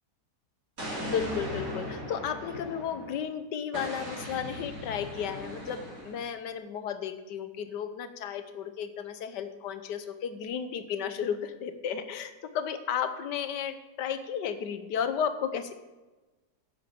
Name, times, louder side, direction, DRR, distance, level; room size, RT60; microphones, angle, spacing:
Explosion, 0.8-3.2 3.7-6.3, equal, 55° right, 4.1 m, -38 dB
voice 1, 1.0-15.7, left 8 dB, 80° left, 10 dB, 1.5 m, -33 dB
10.5 x 8.7 x 7.0 m, 1.2 s
omnidirectional pair, 1.8 m